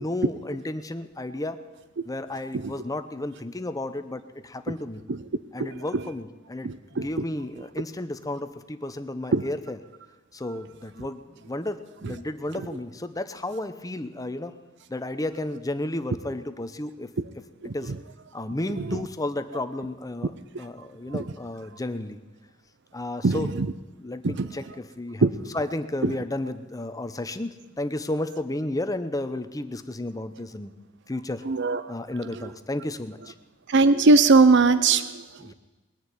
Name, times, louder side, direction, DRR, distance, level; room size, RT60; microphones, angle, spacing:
voice 1, 0.0-1.6 2.1-5.0 5.5-9.8 10.3-14.5 14.9-17.1 17.7-17.9 18.3-22.2 22.9-23.5 24.0-25.3 25.5-30.7 31.1-31.4 31.9-33.3 35.4-35.5, left 1 dB, 20° left, 10 dB, 0.8 m, -32 dB
voice 2, 6.6-7.1 9.3-9.4 12.0-12.1 17.6-17.7 18.8-19.0 21.1-21.2 23.2-23.7 24.2-24.5 25.2-25.3 26.0-26.1 31.5-31.9 33.7-35.2, right 3 dB, 60° right, 13 dB, 0.6 m, -20 dB
21.0 x 7.1 x 9.6 m, 1.2 s
head